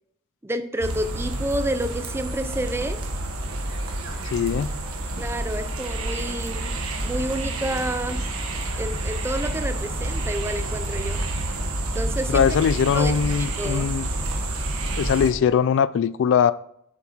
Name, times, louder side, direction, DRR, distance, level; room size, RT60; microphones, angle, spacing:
voice 1, 0.4-3.0 5.2-6.8 7.0-8.2 8.8-11.2 11.9-12.6 12.9-13.9, right 1 dB, 10° right, 0.6 m, -29 dB
sound 1, 0.8-15.3, right 1 dB, 70° right, 1.5 m, -28 dB
voice 2, 4.2-4.7 12.3-14.1 15.0-16.5, left 7 dB, 55° left, 0.3 m, -21 dB
7.5 x 7.2 x 4.5 m
head